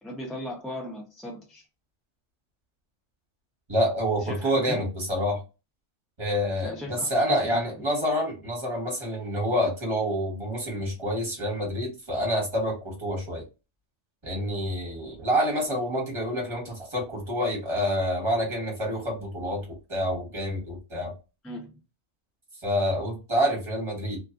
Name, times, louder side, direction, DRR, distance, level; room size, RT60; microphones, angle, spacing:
voice 1, 0.0-1.6 4.2-4.9 6.6-7.6 21.4-21.8, left 1 dB, ahead, 0.3 m, -37 dB
voice 2, 3.7-5.4 6.2-13.4 14.2-19.6 19.9-21.1 22.6-24.2, equal, 25° right, 1.2 m, -27 dB
2.5 x 2.4 x 2.4 m
omnidirectional pair, 1.4 m